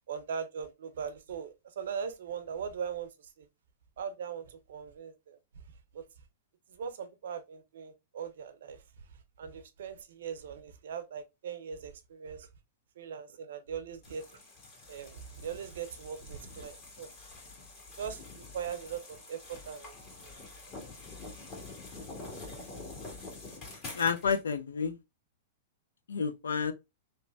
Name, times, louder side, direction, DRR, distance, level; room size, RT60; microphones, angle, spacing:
voice 1, 0.1-3.1 3.4-3.5 4.0-5.4 5.9-6.0 6.7-8.8 9.4-12.5 13.0-14.2 14.9-17.1 18.0-19.4 19.7-20.0 20.2-20.4, right 7 dB, 75° right, 0.5 m, -40 dB
sound 1, 14.0-24.4, left 3 dB, 40° left, 1.8 m, -47 dB
voice 2, 23.9-25.0 26.1-26.7, left 6 dB, 85° left, 0.4 m, -30 dB
3.1 x 2.1 x 2.4 m
hypercardioid pair, 120°, 0 cm